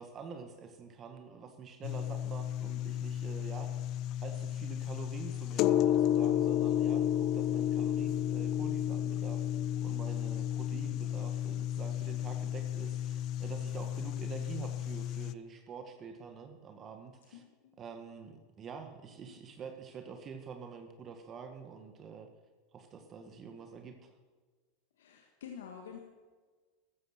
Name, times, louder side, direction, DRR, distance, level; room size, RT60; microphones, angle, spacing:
voice 1, 0.0-3.7 4.2-17.4 17.8-22.3 22.7-24.1, right 5 dB, 35° right, 6 dB, 1.8 m, -47 dB
sound 1, 1.8-15.3, left 11 dB, 50° left, 0.6 m, -32 dB
voice 2, 17.3-17.7 19.2-19.4 25.0-26.0, left 7 dB, 80° left, 3 dB, 1.8 m, -48 dB
14.5 x 13.0 x 6.0 m, 1.4 s
hypercardioid pair, 105°, 0 cm